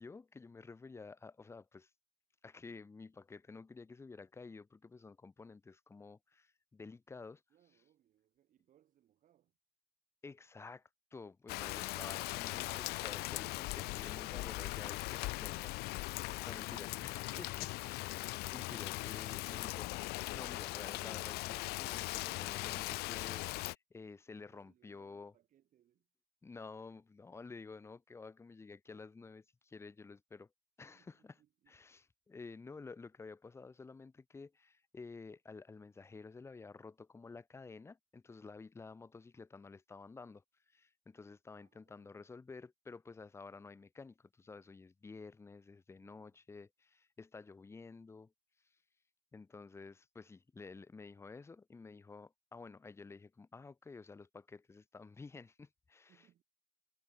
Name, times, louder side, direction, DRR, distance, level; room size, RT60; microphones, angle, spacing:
voice 1, 0.0-1.9 2.4-7.4 10.2-10.8 11.1-15.7 16.5-18.1 18.5-25.3 26.4-30.5 30.8-31.4 31.7-48.3 49.3-56.1, left 4 dB, 15° left, 1.0 m, -52 dB
voice 2, 7.5-9.6 16.3-17.1 17.6-18.0 24.5-26.1 30.8-31.8 41.5-42.2 46.0-46.4 56.1-56.4, right 11 dB, 55° right, 7.6 m, -71 dB
Rain, 11.5-23.8, left 22 dB, 85° left, 1.1 m, -40 dB
cardioid pair, 125°, 16 cm